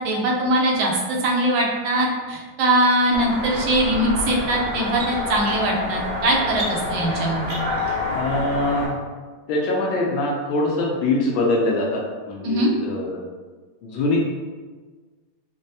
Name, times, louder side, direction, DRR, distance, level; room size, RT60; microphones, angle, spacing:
voice 1, 0.0-7.5 12.4-12.7, right 1 dB, 75° right, -1 dB, 1.3 m, -21 dB
sound 1, 3.1-8.9, left 2 dB, 55° right, 0.6 m, -28 dB
voice 2, 8.1-9.0 9.5-12.0 12.3-13.2 13.8-14.2, left 2 dB, 75° left, -1 dB, 1.3 m, -23 dB
5.2 x 2.1 x 2.6 m, 1.4 s
omnidirectional pair, 2.3 m